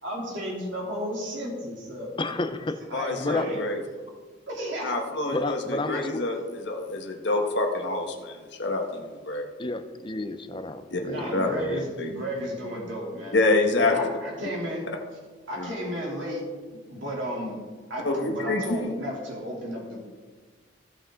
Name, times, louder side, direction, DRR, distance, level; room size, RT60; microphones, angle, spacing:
voice 1, 0.0-2.5 2.9-3.6 4.5-5.0 5.9-6.0 11.0-13.4 13.7-14.8 15.5-16.4 16.9-17.6 17.9-20.0, equal, 70° right, -3 dB, 3.0 m, -33 dB
voice 2, 2.2-2.8 3.2-3.4 5.3-6.2 9.6-11.8, left 2 dB, 25° left, 9 dB, 0.6 m, -31 dB
voice 3, 2.9-3.8 4.8-9.4 10.9-11.0 11.3-11.5 12.0-12.1 13.3-14.0 15.6-15.7 18.0-18.9, left 2 dB, 60° left, 2 dB, 1.5 m, -27 dB
16.5 x 5.9 x 3.7 m, 1.4 s
head